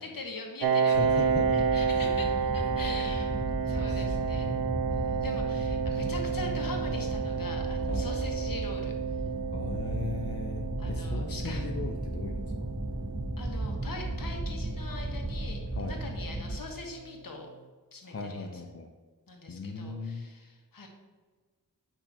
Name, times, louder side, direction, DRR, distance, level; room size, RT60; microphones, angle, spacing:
voice 1, 0.0-3.4 3.6-4.6 4.9-9.0 10.8-11.7 13.4-17.5 17.9-18.6 19.3-20.9, left 3 dB, 70° left, 1 dB, 1.3 m, -42 dB
Piano, 0.6-16.0, right 6 dB, 90° right, 0.6 m, -31 dB
voice 2, 0.9-1.6 3.8-5.2 7.9-8.1 9.5-12.7 15.7-16.0 18.0-18.9 19.5-20.3, left 3 dB, 45° left, 3 dB, 0.6 m, -38 dB
sound 1, 0.9-16.6, right 1 dB, 10° right, 0.4 m, -35 dB
8.7 x 2.9 x 5.7 m, 1.4 s
wide cardioid pair, 85°, 35 cm